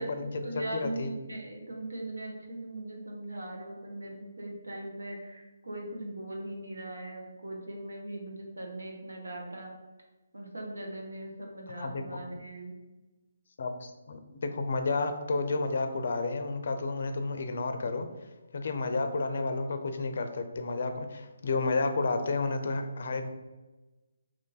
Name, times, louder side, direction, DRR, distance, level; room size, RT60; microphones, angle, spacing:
voice 1, 0.0-9.7 10.3-12.8, right 1 dB, 85° right, 0 dB, 0.9 m, -40 dB
voice 2, 0.5-1.1 11.8-12.2 13.6-18.1 18.5-23.3, left 3 dB, 60° left, 7 dB, 0.4 m, -31 dB
2.9 x 2.7 x 3.8 m, 1.2 s
figure-of-eight pair, 150°, 0 cm